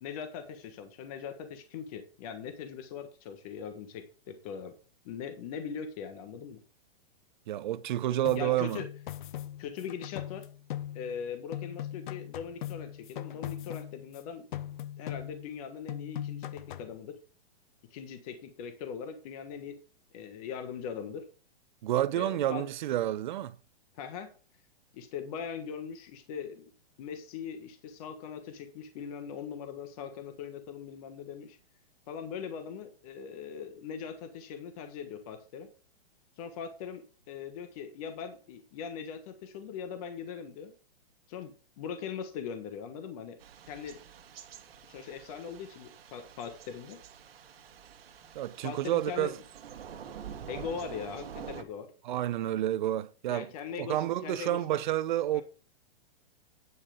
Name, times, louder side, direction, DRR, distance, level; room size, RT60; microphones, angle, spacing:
voice 1, 0.0-4.7 5.0-6.6 8.3-8.9 9.6-10.4 10.9-14.6 15.0-17.2 17.9-19.8 20.1-21.3 22.1-22.6 23.9-24.3 24.9-26.7 27.0-31.6 32.1-35.7 36.4-40.7 41.3-43.4 43.7-44.0 44.9-47.0 48.6-49.3 50.5-51.9 53.3-54.8 55.3-55.4, left 7 dB, 35° left, 1.4 m, -40 dB
voice 2, 7.5-8.8 21.8-23.5 48.4-49.4 52.0-53.5 53.8-55.4, right 13 dB, 50° right, 0.7 m, -29 dB
sound 1, 8.2-11.3 11.5-14.2 14.5-15.6 15.9-17.0, left 12 dB, 55° left, 0.7 m, -40 dB
Thunder / Rain, 43.4-51.6, right 8 dB, 70° right, 1.5 m, -47 dB
9.6 x 5.6 x 5.0 m
hypercardioid pair, 160°, 31 cm